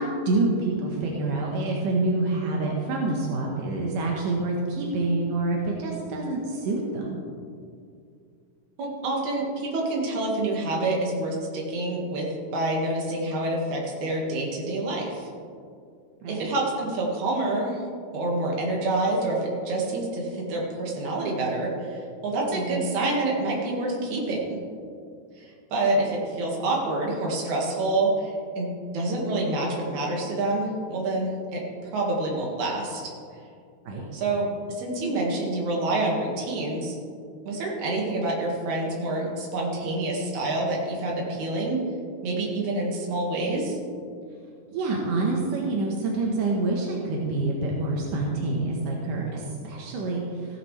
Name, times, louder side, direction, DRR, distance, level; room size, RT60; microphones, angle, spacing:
voice 1, 0.0-7.2 16.2-16.5 22.5-22.9 33.9-34.1 44.7-50.6, right 2 dB, 85° right, -2 dB, 2.9 m, -27 dB
voice 2, 8.8-15.3 16.3-17.8 18.1-24.6 25.4-33.0 34.1-34.5 34.8-37.0 37.4-41.8 42.2-43.8, right 2 dB, 65° right, -2 dB, 3.2 m, -27 dB
15.5 x 11.0 x 3.3 m, 2.3 s
omnidirectional pair, 3.7 m